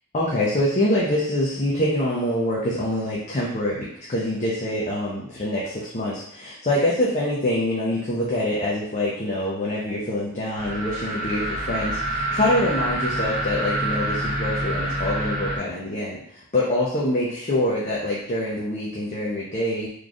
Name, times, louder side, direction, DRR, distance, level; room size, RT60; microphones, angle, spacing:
voice 1, 0.1-16.2 16.5-19.9, left 1 dB, 35° left, -5 dB, 0.6 m, -25 dB
sound 1, 10.5-15.6, right 1 dB, 5° right, 0.9 m, -27 dB
4.0 x 3.2 x 2.4 m, 0.68 s
head